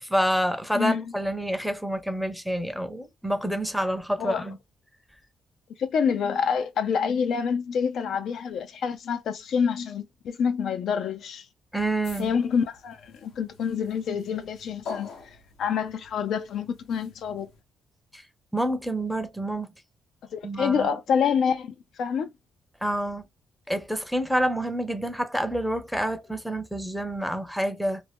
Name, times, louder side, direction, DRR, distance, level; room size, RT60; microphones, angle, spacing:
voice 1, 0.0-4.6 11.7-12.3 18.1-18.2 18.5-19.7 20.4-20.9 22.8-23.2 23.7-28.0, right 1 dB, ahead, 0.6 m, -28 dB
voice 2, 0.7-1.1 4.2-4.5 5.8-11.5 12.2-15.1 15.6-17.5 20.3-22.3, left 6 dB, 70° left, 0.4 m, -27 dB
sound 1, 12.0-17.6, left 4 dB, 85° left, 0.9 m, -45 dB
2.6 x 2.1 x 3.3 m
cardioid pair, 90°, 0 cm